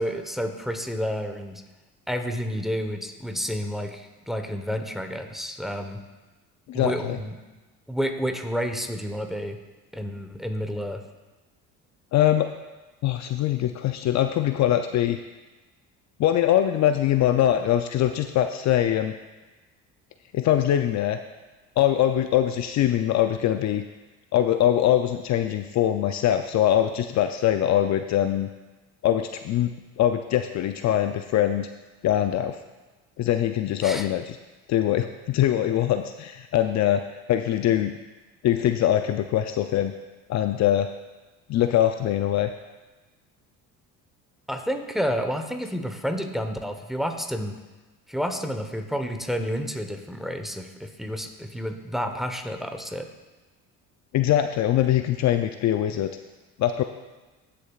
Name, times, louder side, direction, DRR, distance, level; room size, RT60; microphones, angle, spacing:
voice 1, 0.0-1.6 2.1-6.0 6.7-7.4 7.9-9.6 9.9-11.0 33.8-34.1 44.5-47.5 48.1-53.1, equal, ahead, 5 dB, 1.0 m, -30 dB
voice 2, 6.7-7.2 12.1-12.5 13.0-15.2 16.2-19.1 20.3-21.2 21.8-23.8 24.3-28.5 29.0-31.7 32.0-32.6 33.2-34.4 34.7-37.0 37.3-37.9 38.4-39.9 40.3-40.9 41.5-42.5 54.1-56.1 56.6-56.8, left 11 dB, 50° left, 7 dB, 0.5 m, -22 dB
15.5 x 6.8 x 2.4 m, 1.2 s
supercardioid pair, 80°, 36 cm